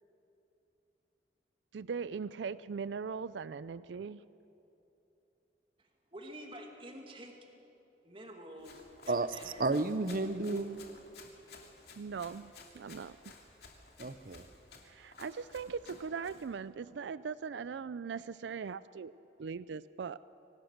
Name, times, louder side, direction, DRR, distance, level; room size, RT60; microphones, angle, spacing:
voice 1, 1.7-4.2 12.0-13.2 14.8-19.1 19.4-20.2, right 5 dB, 85° right, 17 dB, 0.4 m, -40 dB
voice 2, 6.1-7.3 8.0-9.6, right 1 dB, 30° right, 2 dB, 2.5 m, -48 dB
Run, 8.6-16.5, left 3 dB, 60° left, 2.7 m, -55 dB
voice 3, 9.1-10.8 14.0-14.5, right 3 dB, 50° right, 13 dB, 0.7 m, -32 dB
24.5 x 18.0 x 6.6 m, 2.9 s
head